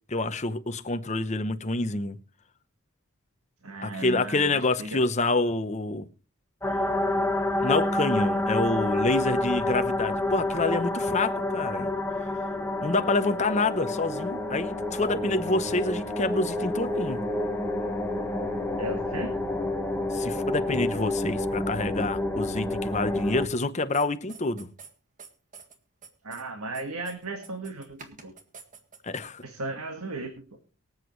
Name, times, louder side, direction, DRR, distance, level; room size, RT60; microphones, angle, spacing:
voice 1, 0.1-2.2 3.8-6.1 7.6-11.9 12.8-17.2 20.1-24.7 29.0-29.4, left 2 dB, 30° left, 0.8 m, -27 dB
voice 2, 3.6-5.0 18.8-19.3 26.2-28.3 29.4-30.6, right 2 dB, 80° right, 1.7 m, -36 dB
sound 1, 6.6-23.5, left 2 dB, 10° left, 1.3 m, -28 dB
sound 2, 23.9-24.9 25.2-25.8 26.0-26.5 26.7-29.2, right 5 dB, 35° right, 1.8 m, -46 dB
24.0 x 8.1 x 3.2 m
head